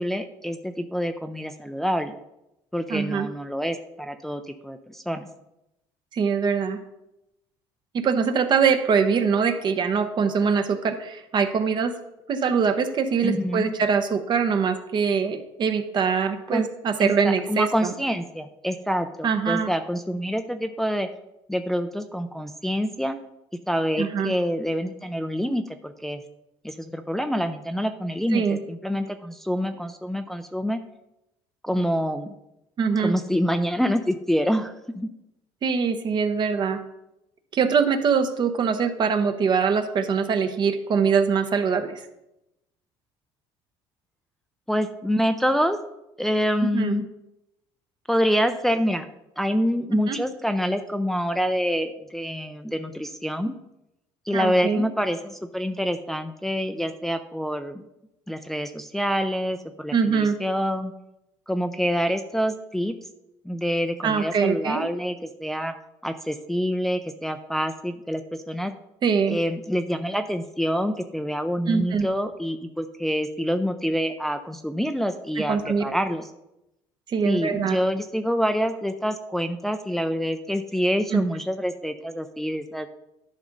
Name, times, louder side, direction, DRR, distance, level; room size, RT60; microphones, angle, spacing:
voice 1, 0.0-2.1 2.7-5.3 13.2-13.7 16.5-16.7 17.0-21.1 21.5-23.2 23.7-26.2 26.6-30.8 31.6-32.4 33.0-35.1 44.7-45.8 46.2-47.1 48.1-49.1 49.4-53.6 54.3-57.8 58.3-60.9 61.5-62.9 63.4-65.7 66.0-68.7 69.3-76.3 77.2-82.9, equal, 5° left, 7 dB, 0.4 m, -26 dB
voice 2, 2.9-3.3 6.1-6.8 7.9-11.9 12.3-17.9 19.2-19.7 24.0-24.3 28.3-28.6 32.8-33.1 35.6-36.8 37.5-42.0 46.7-47.0 50.1-50.2 54.3-54.9 59.9-60.3 64.0-64.9 69.0-69.4 71.7-72.1 75.4-75.8 77.1-77.8 81.1-81.2, right 6 dB, 45° right, 8 dB, 0.9 m, -23 dB
11.0 x 5.2 x 3.8 m, 0.89 s
supercardioid pair, 95°, 11 cm